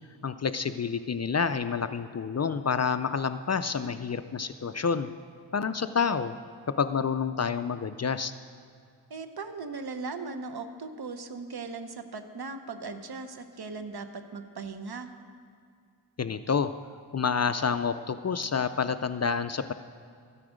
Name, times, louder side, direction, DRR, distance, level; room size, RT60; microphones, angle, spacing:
voice 1, 0.2-5.1 5.5-6.3 6.8-8.3 16.2-16.7 17.1-19.7, left 6 dB, 40° left, 11 dB, 0.4 m, -28 dB
voice 2, 9.1-15.1, right 4 dB, 55° right, 9 dB, 0.9 m, -38 dB
13.0 x 9.8 x 5.0 m, 2.3 s
wide cardioid pair, 75°, 44 cm